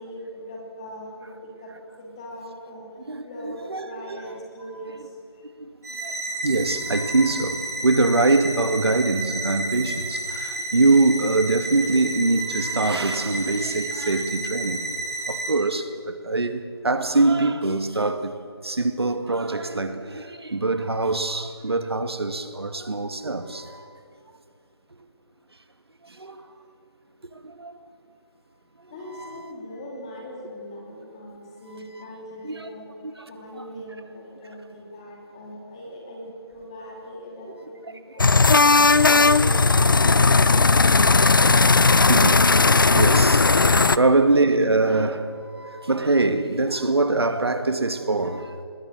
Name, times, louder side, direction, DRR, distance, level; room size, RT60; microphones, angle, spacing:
voice 1, 0.0-1.3 1.6-1.7 2.0-2.8 3.2-5.0 28.9-32.8 33.3-36.2 36.5-38.3 38.7-40.8, equal, 15° left, 3.1 m, -40 dB
voice 2, 3.1-4.3 5.6-5.7 6.0-14.8 15.3-18.4 18.6-23.9 26.0-26.5 27.3-27.8 28.8-29.4 32.0-32.1 32.4-32.7 33.0-33.3 33.6-33.8 37.5-37.6 38.2-38.3 40.6-41.1 41.8-48.6, right 3 dB, 70° right, 2.2 m, -24 dB
sound 1, 5.8-15.5, right 2 dB, 40° right, 5.5 m, -31 dB
sound 2, 38.2-44.0, left 3 dB, 50° left, 0.8 m, -16 dB
26.5 x 21.5 x 7.8 m
figure-of-eight pair, 175°, 14 cm